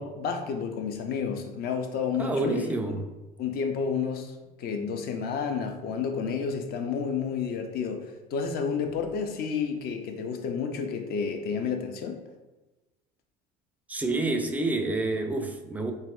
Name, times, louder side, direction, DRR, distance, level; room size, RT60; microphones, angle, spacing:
voice 1, 0.0-2.7 3.4-8.1 8.3-12.2, left 6 dB, 50° left, 5 dB, 0.5 m, -30 dB
voice 2, 2.2-3.0 13.9-15.9, right 2 dB, 10° right, 4 dB, 0.3 m, -28 dB
4.0 x 2.1 x 2.4 m, 1.1 s
supercardioid pair, 85°, 21 cm